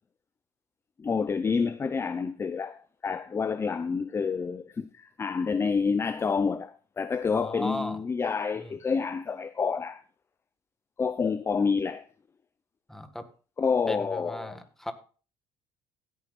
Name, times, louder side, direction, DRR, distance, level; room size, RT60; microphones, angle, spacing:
voice 1, 1.0-10.0 11.0-12.0 13.6-14.6, left 5 dB, 25° left, 0.6 m, -28 dB
voice 2, 7.3-8.0 8.6-8.7 12.9-13.3 13.9-14.9, left 1 dB, 5° left, 1.6 m, -36 dB
16.5 x 9.3 x 2.5 m
cardioid pair, 105°, 10 cm